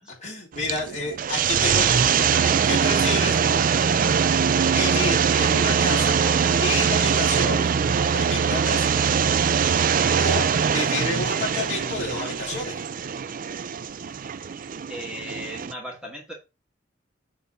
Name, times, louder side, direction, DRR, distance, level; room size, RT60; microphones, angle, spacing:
voice 1, 0.2-3.6 4.7-7.7 8.1-9.1 10.2-12.8, left 2 dB, 40° left, 4.4 m, -30 dB
sound 1, 0.5-15.7, right 7 dB, 45° right, 0.4 m, -22 dB
voice 2, 14.9-16.3, equal, 5° right, 2.4 m, -37 dB
9.7 x 3.9 x 5.5 m
head